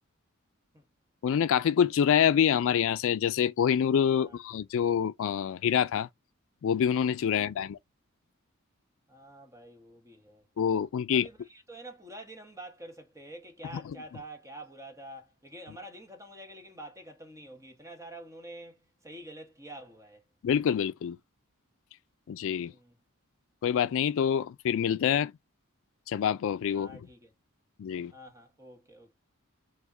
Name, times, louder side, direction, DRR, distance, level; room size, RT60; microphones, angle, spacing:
voice 1, 1.2-6.1 6.6-7.8 10.6-11.3 20.4-21.2 22.3-22.7 23.6-25.3 26.1-26.9 27.8-28.1, left 8 dB, 65° left, 0.3 m, -26 dB
voice 2, 9.1-10.4 11.1-20.2 22.7-23.0 26.7-27.3 28.1-29.1, right 1 dB, 15° right, 1.0 m, -47 dB
4.8 x 2.2 x 3.8 m
head